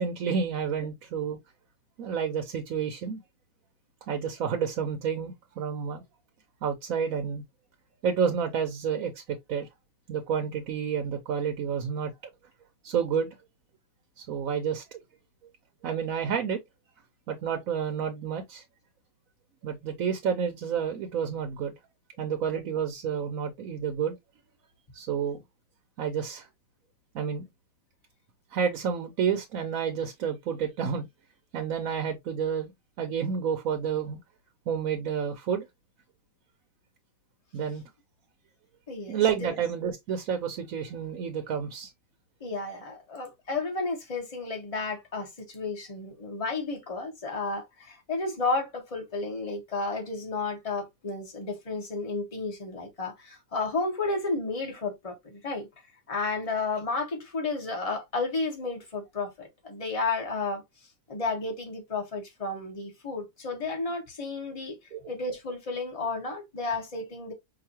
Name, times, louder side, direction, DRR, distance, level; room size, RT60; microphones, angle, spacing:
voice 1, 0.0-1.4 2.0-3.2 4.1-6.0 6.6-7.4 8.0-9.7 10.1-12.1 12.8-13.3 14.2-15.0 15.8-16.6 17.3-18.6 19.6-21.7 22.2-24.1 24.9-25.4 26.0-26.5 27.1-27.4 28.5-31.1 31.5-32.7 33.0-34.2 34.7-35.7 37.5-37.8 39.1-41.9 64.9-65.0, right 7 dB, 75° right, 1.1 m, -30 dB
voice 2, 38.9-39.5 42.4-55.7 56.1-60.6 61.1-64.7 65.1-67.3, left 3 dB, 25° left, 1.3 m, -32 dB
4.9 x 2.6 x 2.9 m
omnidirectional pair, 1.5 m